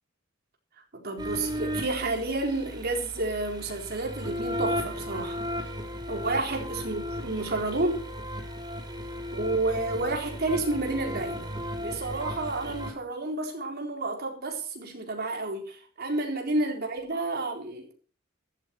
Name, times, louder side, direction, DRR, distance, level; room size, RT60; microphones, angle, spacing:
voice 1, 0.9-5.5 6.1-8.1 9.3-11.5 11.8-17.9, right 2 dB, 50° right, 4.1 m, -30 dB
sound 1, 1.2-12.9, equal, 20° right, 3.4 m, -35 dB
14.5 x 12.5 x 4.5 m
head